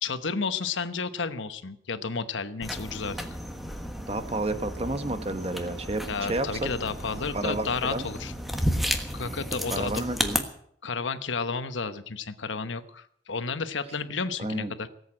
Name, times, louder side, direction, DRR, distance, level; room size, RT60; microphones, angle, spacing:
voice 1, 0.0-3.2 6.1-8.3 9.1-10.0 10.8-14.9, left 5 dB, 85° left, 12 dB, 1.0 m, -32 dB
sound 1, 2.6-10.4, equal, ahead, 1.3 m, -33 dB
voice 2, 4.1-6.7 7.3-8.0 9.7-10.4 14.4-14.7, right 2 dB, 30° right, 10 dB, 1.1 m, -31 dB
18.0 x 8.1 x 8.7 m, 0.69 s
head